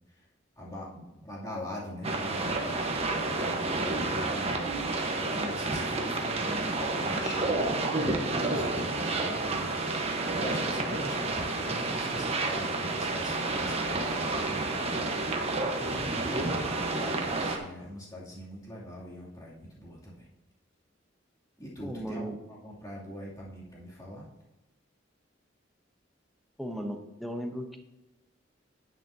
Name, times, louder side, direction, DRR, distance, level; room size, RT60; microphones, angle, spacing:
voice 1, 0.6-2.9 3.2-4.7 5.1-20.3 21.6-24.3, equal, 20° left, -7 dB, 2.8 m, -42 dB
sound 1, 2.0-17.6, right 2 dB, 35° right, 1.1 m, -30 dB
voice 2, 21.8-22.4 26.6-27.8, equal, ahead, 4 dB, 0.9 m, -36 dB
9.8 x 9.1 x 2.8 m, 0.97 s
head